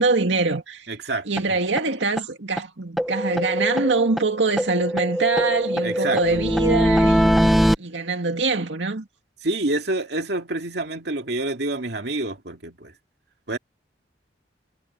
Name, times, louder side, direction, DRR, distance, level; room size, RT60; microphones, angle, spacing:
voice 1, 0.0-0.9 1.3-9.1, right 3 dB, 85° right, 2.2 m, -24 dB
voice 2, 0.9-1.3 5.8-6.4 9.4-12.9 13.5-13.6, right 2 dB, 65° right, 2.4 m, -27 dB
sound 1, 1.4-1.5 1.8-1.9 2.2-2.3 2.6-2.7 3.0-4.3 4.6-7.8, equal, ahead, 0.5 m, -21 dB
head